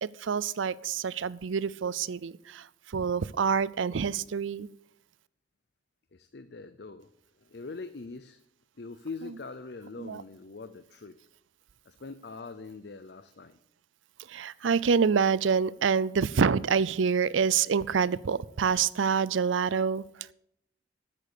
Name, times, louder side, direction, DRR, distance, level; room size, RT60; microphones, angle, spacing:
voice 1, 0.0-2.7 2.9-4.7 10.0-10.2 14.3-20.0, right 6 dB, 90° right, 20 dB, 0.5 m, -27 dB
voice 2, 6.1-7.1 7.4-8.4 8.8-11.2 11.9-13.6, left 4 dB, 60° left, 11 dB, 0.6 m, -43 dB
13.5 x 8.5 x 6.7 m, 0.76 s
head